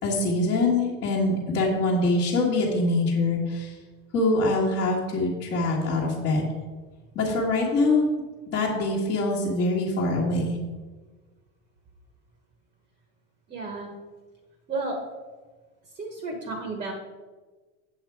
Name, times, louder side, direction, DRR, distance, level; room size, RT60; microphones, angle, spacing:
voice 1, 0.0-3.8 4.1-6.4 7.1-8.0 8.5-10.6, left 2 dB, 30° left, -6 dB, 1.5 m, -24 dB
voice 2, 13.5-13.9 14.7-15.0 15.9-16.9, right 3 dB, 20° right, 2 dB, 1.2 m, -32 dB
8.2 x 8.0 x 4.6 m, 1.3 s
supercardioid pair, 165°, 39 cm